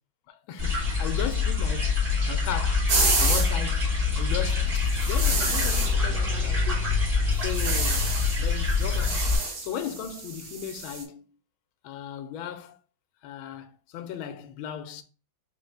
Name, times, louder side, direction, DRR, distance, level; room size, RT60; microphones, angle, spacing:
voice 1, 0.3-2.9 3.2-3.9 4.2-6.9 7.4-8.1 8.4-9.2 9.6-11.3 11.8-12.8 13.2-15.0, left 9 dB, 85° left, 1.4 m, -36 dB
sound 1, 0.6-9.4, left 4 dB, 30° right, 1.7 m, -25 dB
sound 2, 2.9-3.5 5.0-5.9 7.4-8.4 8.7-11.0, right 3 dB, 55° right, 1.5 m, -29 dB
3.9 x 3.5 x 3.2 m
omnidirectional pair, 2.2 m